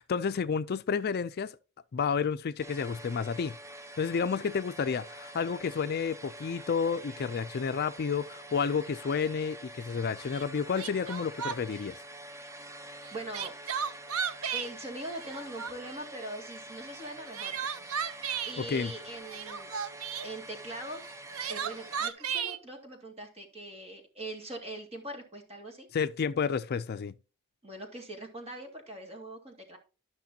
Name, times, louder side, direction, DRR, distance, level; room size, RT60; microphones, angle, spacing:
voice 1, 0.0-1.6 1.9-3.6 4.0-12.0 18.6-18.9 25.9-27.1, left 6 dB, 45° left, 0.4 m, -30 dB
sound 1, 2.6-22.1, right 1 dB, 15° right, 0.8 m, -46 dB
Crying sobbing, 10.3-10.4 10.8-11.8 13.0-14.7 15.2-16.0 17.0-18.6 19.2-20.3 21.0-22.6, right 7 dB, 80° right, 0.7 m, -34 dB
voice 2, 13.1-13.5 14.5-17.7 18.4-19.7 20.2-21.0 21.5-25.9 27.6-29.8, right 1 dB, 30° right, 2.3 m, -42 dB
13.0 x 5.9 x 2.8 m
head